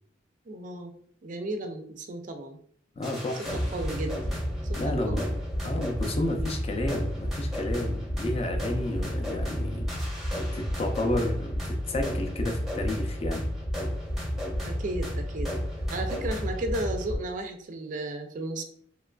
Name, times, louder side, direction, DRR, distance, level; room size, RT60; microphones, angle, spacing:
voice 1, 0.5-0.9 1.2-2.6 3.7-4.4 4.7-5.2 14.6-15.6 15.9-18.6, right 2 dB, 45° right, 6 dB, 0.4 m, -34 dB
voice 2, 3.0-3.5 4.8-5.3 5.6-10.1 10.5-13.5, left 1 dB, 30° left, 3 dB, 0.4 m, -31 dB
sound 1, 3.0-17.2, equal, ahead, 0.7 m, -31 dB
2.9 x 2.4 x 2.2 m, 0.62 s
head